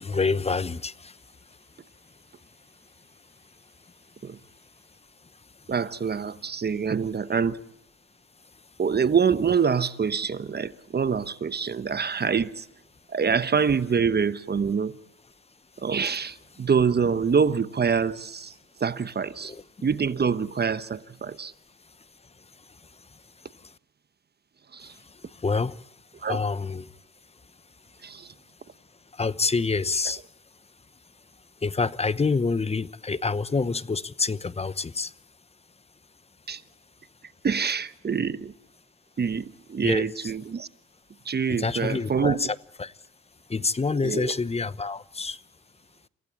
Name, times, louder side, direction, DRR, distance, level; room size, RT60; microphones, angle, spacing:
voice 1, 0.0-1.6 3.9-4.0 5.2-5.7 15.8-15.9 19.4-19.6 21.9-22.0 22.2-23.7 24.8-26.9 27.8-27.9 29.1-30.2 31.6-35.1 39.8-40.3 41.6-42.9 43.5-45.4, left 4 dB, 20° left, 0.9 m, -28 dB
voice 2, 5.7-7.6 8.8-12.6 13.1-15.0 15.8-18.5 18.8-19.5 19.8-21.5 24.7-24.9 26.2-26.4 28.0-28.3 36.5-36.6 37.4-38.5 39.2-40.7 41.2-42.5 44.0-44.3, right 6 dB, 35° right, 1.0 m, -25 dB
28.5 x 15.5 x 8.7 m
cardioid pair, 90°, 30 cm